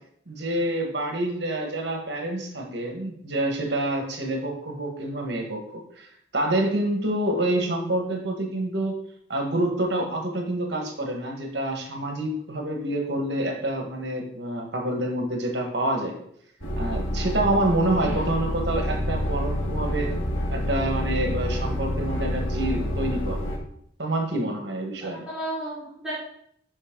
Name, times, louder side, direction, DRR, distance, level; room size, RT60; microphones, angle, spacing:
voice 1, 0.3-5.6 6.0-9.0 9.3-16.2 16.7-20.1 20.5-23.4 24.0-25.2, right 1 dB, 60° right, 2 dB, 1.6 m, -27 dB
sound 1, 16.6-23.6, equal, 90° left, 2.6 m, -28 dB
voice 2, 17.9-18.3 25.0-26.1, equal, 5° right, -14 dB, 4.2 m, -34 dB
11.5 x 5.3 x 3.9 m, 0.68 s
head